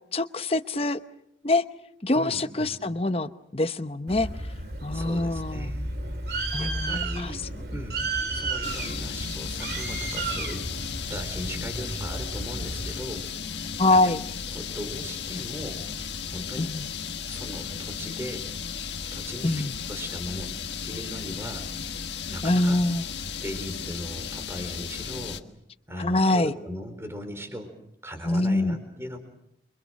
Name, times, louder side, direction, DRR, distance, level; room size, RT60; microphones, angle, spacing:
voice 1, 0.1-1.0 1.4-1.6 2.0-4.3 4.8-5.7 6.5-7.3 13.8-14.2 16.6-16.9 19.4-19.7 22.4-23.0 26.0-26.5 28.2-28.8, left 2 dB, 35° left, 10 dB, 0.9 m, -24 dB
voice 2, 2.1-2.7 4.9-5.9 6.6-8.0 8.3-10.7 11.1-13.3 13.9-14.2 14.5-16.7 17.3-18.5 19.1-20.5 20.8-21.7 22.3-22.8 23.4-25.4 25.9-27.7 28.0-29.2, equal, 15° right, 7 dB, 4.3 m, -38 dB
Bird, 4.1-13.0, right 2 dB, 60° right, 2.8 m, -33 dB
sound 1, 8.6-25.4, left 6 dB, 80° left, 1.5 m, -35 dB
29.0 x 24.5 x 6.4 m, 0.75 s
head